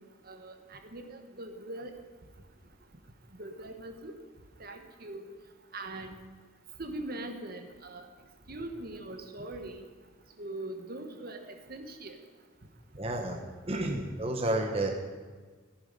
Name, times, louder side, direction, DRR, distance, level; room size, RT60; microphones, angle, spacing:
voice 1, 0.3-1.9 3.4-4.1 4.6-5.3 5.7-6.2 6.8-8.1 8.5-9.8 10.4-11.4 11.7-12.2, right 2 dB, 50° right, 5 dB, 1.2 m, -41 dB
voice 2, 13.0-13.4 13.7-14.9, right 1 dB, 30° right, 2 dB, 1.1 m, -30 dB
15.0 x 10.5 x 5.4 m, 1.5 s
head